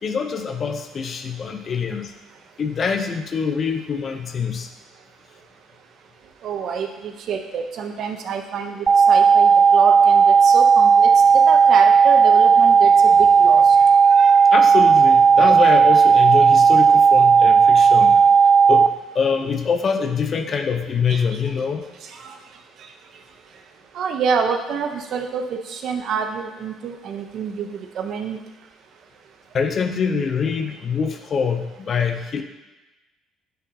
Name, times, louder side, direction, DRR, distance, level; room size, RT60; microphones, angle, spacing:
voice 1, 0.0-2.1 2.6-4.7 14.5-18.2 18.7-18.9 19.1-21.8 29.5-32.4, left 6 dB, 45° left, 6 dB, 0.7 m, -24 dB
voice 2, 6.4-13.6 14.2-14.4 21.1-21.2 22.2-22.3 23.9-27.7 28.0-28.4, right 6 dB, 60° right, 5 dB, 0.8 m, -27 dB
sound 1, 8.9-18.9, right 6 dB, 40° right, 0.3 m, -13 dB
10.0 x 4.3 x 2.8 m, 1.1 s
supercardioid pair, 80°, 0 cm